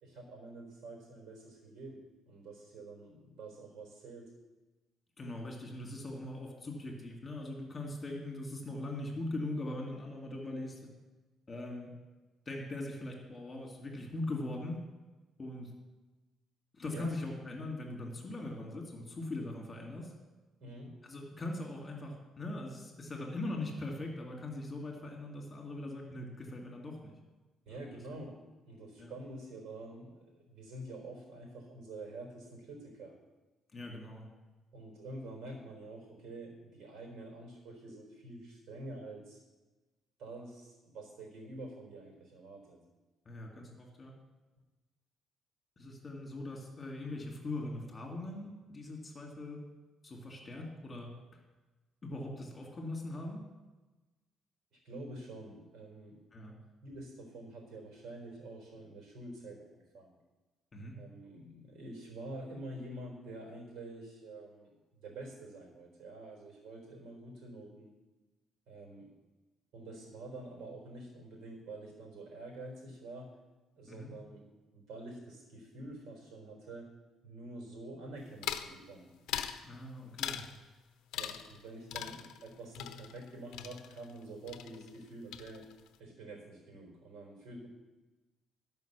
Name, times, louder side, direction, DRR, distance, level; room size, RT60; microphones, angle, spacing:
voice 1, 0.0-4.3 16.9-17.1 20.6-20.9 27.7-28.4 28.7-33.2 34.7-39.4 40.2-42.8 54.7-56.2 56.8-60.2 61.0-64.7 65.0-67.9 68.7-69.1 69.7-73.3 73.8-76.9 77.2-79.1 81.2-85.6 86.0-87.7, right 2 dB, 70° right, 0 dB, 4.2 m, -47 dB
voice 2, 5.2-10.8 11.5-11.9 12.5-14.8 15.4-15.7 16.7-20.1 21.0-27.2 27.7-27.8 29.0-29.1 33.7-34.3 43.3-44.1 45.8-49.6 50.0-51.1 52.0-53.4 56.3-56.6 60.7-61.0 73.9-74.1 79.6-80.4, left 2 dB, 25° left, 0 dB, 2.2 m, -41 dB
sound 1, 78.4-78.7 79.3-79.6 80.2-80.6 81.1-81.6 81.9-84.2 84.5-85.1 85.3-85.9, left 10 dB, 85° left, 0.6 m, -40 dB
12.0 x 5.4 x 6.8 m, 1.2 s
cardioid pair, 125°, 0 cm